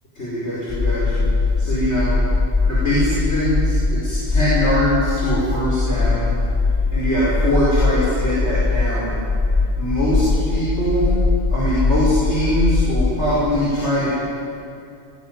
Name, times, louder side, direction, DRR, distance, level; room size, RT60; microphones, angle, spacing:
voice 1, 0.2-1.3 1.6-2.2 2.6-6.4 6.9-9.2 9.8-11.2 11.5-14.1, equal, 80° left, -8 dB, 5.3 m, -22 dB
sound 1, 0.7-13.3, left 3 dB, 25° left, 1.0 m, -21 dB
20.0 x 16.5 x 9.5 m, 2.5 s
omnidirectional pair, 1.2 m